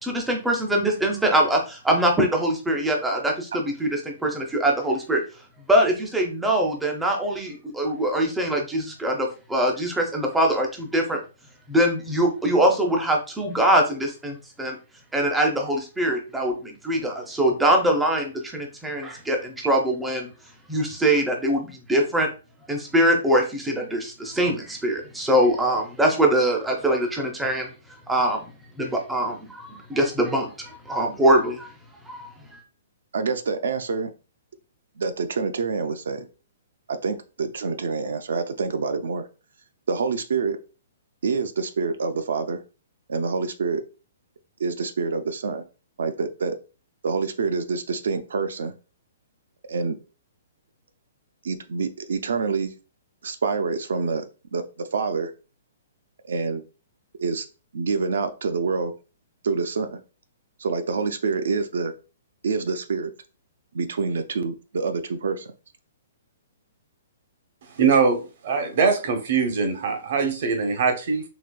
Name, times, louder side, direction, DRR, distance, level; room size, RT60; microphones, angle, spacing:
voice 1, 0.0-5.2 5.7-11.2 11.7-14.8 15.1-20.3 20.7-22.3 22.7-27.7 28.1-28.4 28.8-31.7 32.1-32.6, right 1 dB, 5° right, 0.4 m, -23 dB
voice 2, 33.1-34.1 35.0-36.3 36.9-39.2 39.9-40.6 41.2-42.6 43.1-43.8 44.6-45.6 46.0-46.6 47.0-48.7 49.7-50.0 51.4-52.7 53.2-54.2 54.5-55.3 56.2-56.6 57.2-57.5 57.7-58.9 59.4-60.0 60.6-61.9 62.4-63.1 63.7-65.5, right 4 dB, 80° right, 0.4 m, -26 dB
voice 3, 67.7-71.2, right 5 dB, 45° right, 0.7 m, -22 dB
3.9 x 2.7 x 2.2 m
hypercardioid pair, 170°, 0 cm